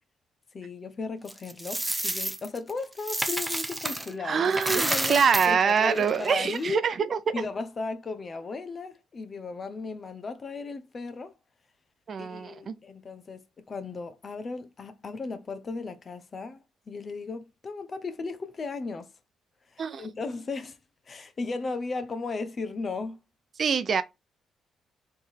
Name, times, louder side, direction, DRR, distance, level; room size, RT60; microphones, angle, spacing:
voice 1, 0.5-6.8 7.3-11.3 12.2-19.1 19.7-20.8 21.1-23.2, left 4 dB, 40° left, 0.8 m, -36 dB
Coin (dropping), 1.3-4.1 4.4-6.7, right 1 dB, 10° right, 0.7 m, -31 dB
voice 2, 4.2-7.3 12.1-12.7 19.8-20.1 23.6-24.0, right 6 dB, 50° right, 0.6 m, -25 dB
3.7 x 3.2 x 4.4 m
cardioid pair, 90°, 0 cm